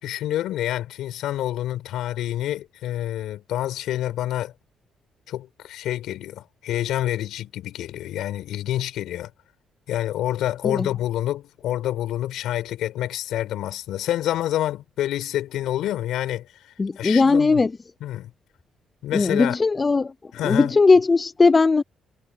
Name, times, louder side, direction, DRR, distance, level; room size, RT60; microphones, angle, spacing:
voice 1, 0.0-4.5 5.3-9.3 9.9-16.5 17.0-17.6 18.0-18.3 19.0-19.6 20.3-20.7, left 13 dB, 85° left, 4.8 m, -27 dB
voice 2, 16.8-17.7 19.1-20.1 20.4-21.8, left 4 dB, 30° left, 0.4 m, -18 dB
cardioid pair, 90°, 0 cm